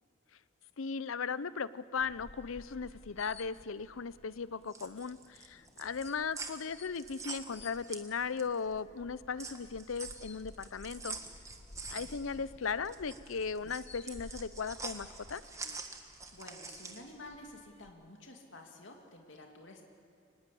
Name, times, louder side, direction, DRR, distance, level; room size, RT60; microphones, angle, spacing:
voice 1, 0.8-11.2 11.9-15.4, left 5 dB, 85° left, 17 dB, 0.6 m, -37 dB
sound 1, 2.0-17.9, left 2 dB, 30° left, 0.9 m, -55 dB
sound 2, 4.5-8.6 9.0-17.1, right 4 dB, 15° right, 1.5 m, -46 dB
voice 2, 16.3-19.9, left 2 dB, 65° left, 2 dB, 2.6 m, -51 dB
24.5 x 19.5 x 8.5 m, 2.4 s
head